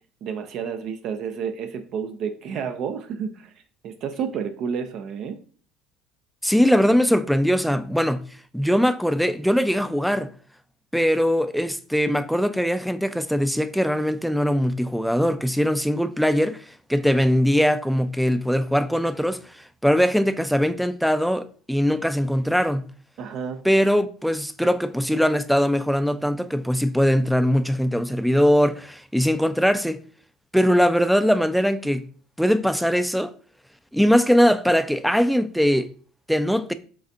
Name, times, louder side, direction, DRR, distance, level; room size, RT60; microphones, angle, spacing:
voice 1, 0.2-3.5 3.8-5.4 23.2-23.6, right 7 dB, 60° right, 0.5 m, -30 dB
voice 2, 6.4-8.2 8.5-10.3 10.9-16.6 16.9-19.4 19.8-22.9 23.6-30.0 30.5-32.0 32.4-33.3 33.9-35.9 36.3-36.7, equal, ahead, 0.4 m, -21 dB
5.0 x 3.4 x 2.6 m
supercardioid pair, 90°, 0 cm